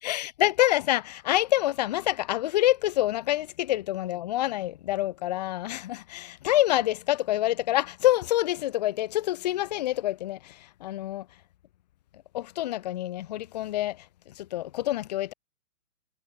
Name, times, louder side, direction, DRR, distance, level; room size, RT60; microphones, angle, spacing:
voice 1, 0.0-11.3 12.3-14.0 14.4-15.3, left 15 dB, 30° left, 0.6 m, -27 dB
hypercardioid pair, 140°, 45 cm